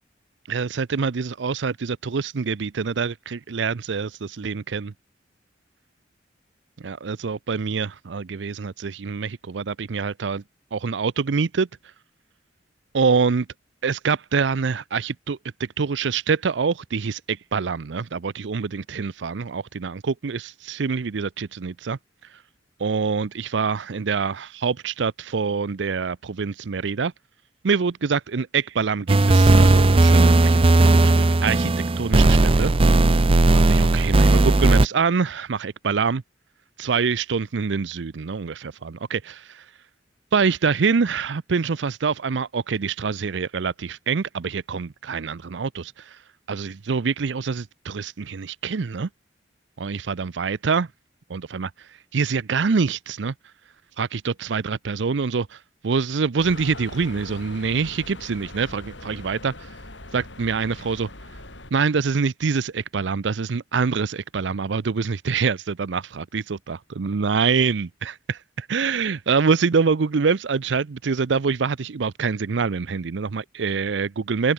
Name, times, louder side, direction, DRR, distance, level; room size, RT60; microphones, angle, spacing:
voice 1, 0.5-4.9 6.8-10.4 10.7-11.7 12.9-13.5 13.8-15.4 15.8-22.0 22.8-27.1 27.6-32.7 33.5-36.2 36.8-39.6 40.3-46.2 46.5-49.1 49.8-50.9 51.3-53.3 54.0-59.7 60.1-61.1 61.7-74.5, right 5 dB, 70° right, 0.5 m, -25 dB
sound 1, 29.1-34.9, right 2 dB, 30° right, 0.6 m, -16 dB
sound 2, 56.4-61.7, left 2 dB, 75° left, 7.5 m, -41 dB
head